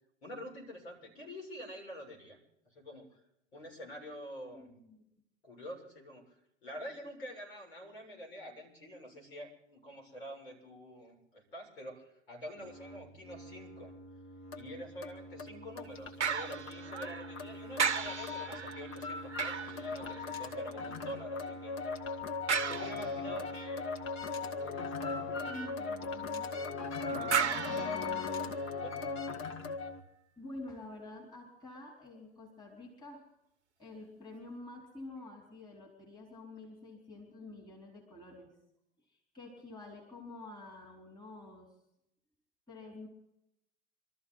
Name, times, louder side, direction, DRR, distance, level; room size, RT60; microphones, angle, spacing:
voice 1, 0.2-2.4 2.7-3.1 3.5-4.7 5.4-6.2 6.6-13.9 14.6-21.7 22.6-23.9 24.3-25.7 27.1-27.4 27.7-28.0 28.8-29.2, equal, 65° left, -1 dB, 7.0 m, -47 dB
voice 2, 4.5-5.0 25.4-26.5 27.6-28.2 30.4-33.2 33.8-38.5 39.1-41.7 42.7-43.1, left 2 dB, 10° left, -2 dB, 4.4 m, -48 dB
sound 1, 12.6-30.0, left 4 dB, 35° left, 1.9 m, -39 dB
sound 2, 16.2-17.4 17.8-20.6 22.5-23.4 27.3-28.8 29.3-29.4, right 6 dB, 75° right, 0.9 m, -35 dB
26.0 x 14.0 x 4.1 m, 0.81 s
figure-of-eight pair, 80°, 35 cm